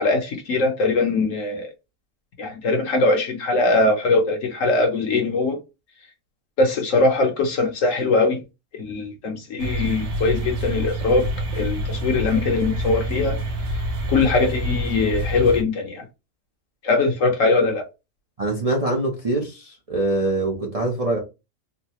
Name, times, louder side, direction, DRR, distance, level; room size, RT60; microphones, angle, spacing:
voice 1, 0.0-1.7 2.4-5.6 6.6-8.4 8.7-13.4 14.1-16.0 16.8-17.8, left 3 dB, 60° left, 1.1 m, -21 dB
sound 1, 9.6-15.6, right 1 dB, 60° right, 1.3 m, -27 dB
voice 2, 18.4-21.2, right 2 dB, 40° right, 0.5 m, -24 dB
3.9 x 2.1 x 2.9 m
omnidirectional pair, 1.7 m